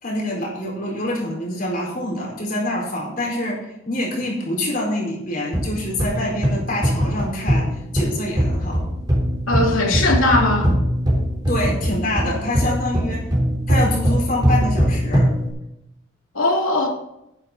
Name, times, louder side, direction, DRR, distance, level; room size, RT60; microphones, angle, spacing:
voice 1, 0.0-7.7 7.9-8.9 11.5-13.2 13.7-15.3, left 1 dB, 45° left, -3 dB, 4.5 m, -26 dB
sound 1, 5.5-15.5, equal, 20° right, 3.7 m, -21 dB
voice 2, 9.5-10.7 16.3-16.9, left 2 dB, 85° left, 0 dB, 2.8 m, -19 dB
11.0 x 10.5 x 4.0 m, 0.85 s
head